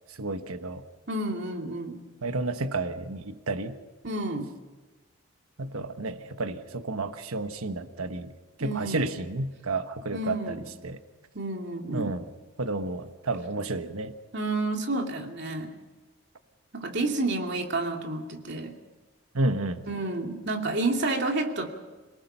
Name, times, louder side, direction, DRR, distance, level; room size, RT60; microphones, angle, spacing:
voice 1, 0.1-0.8 2.2-3.7 5.6-8.3 8.6-11.0 11.9-12.3 12.6-14.1 19.3-19.8, right 2 dB, 85° right, 8 dB, 1.2 m, -31 dB
voice 2, 1.1-2.0 4.0-4.5 8.6-9.1 10.1-10.7 11.3-12.1 14.3-15.7 16.7-18.8 19.9-21.7, right 2 dB, 55° right, 2 dB, 2.6 m, -30 dB
27.5 x 19.0 x 5.6 m, 1.2 s
head